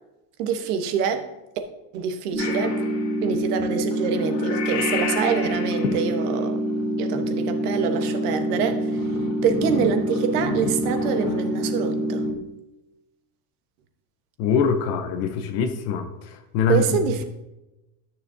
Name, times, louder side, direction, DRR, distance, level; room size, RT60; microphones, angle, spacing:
voice 1, 0.4-1.3 1.9-2.8 3.2-6.6 7.0-9.1 9.4-12.3 16.7-17.2, right 7 dB, 70° right, 1.2 m, -26 dB
sound 1, 2.3-12.3, equal, 15° right, 1.7 m, -26 dB
Purr / Meow, 2.4-12.3, left 6 dB, 85° left, 1.6 m, -33 dB
voice 2, 14.4-17.2, left 5 dB, 35° left, 0.6 m, -24 dB
12.0 x 6.6 x 2.7 m
supercardioid pair, 175°, 48 cm